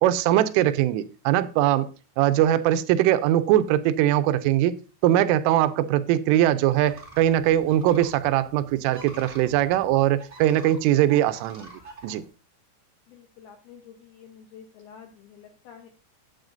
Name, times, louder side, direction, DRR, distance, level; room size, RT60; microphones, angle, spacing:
voice 1, 0.0-1.9 2.2-4.7 5.0-11.7 12.0-12.2, right 12 dB, 85° right, 13 dB, 3.2 m, -21 dB
sound 1, 6.7-12.3, right 2 dB, 45° right, 0.6 m, -47 dB
voice 2, 13.1-15.9, left 7 dB, 80° left, 4 dB, 2.2 m, -48 dB
14.0 x 8.4 x 2.6 m, 0.35 s
omnidirectional pair, 5.7 m